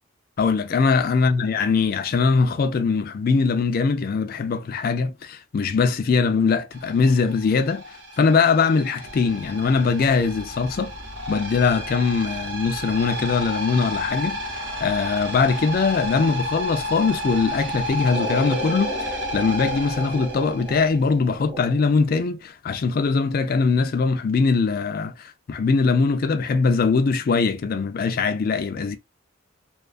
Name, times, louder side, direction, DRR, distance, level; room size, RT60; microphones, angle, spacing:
voice 1, 0.4-7.8 8.2-10.9 11.3-14.4 14.8-18.9 19.3-29.0, left 4 dB, 45° left, 0.3 m, -21 dB
sound 1, 6.7-21.3, left 1 dB, 60° right, 0.7 m, -31 dB
sound 2, 18.1-22.1, right 1 dB, 30° right, 1.0 m, -34 dB
2.4 x 2.3 x 2.4 m
head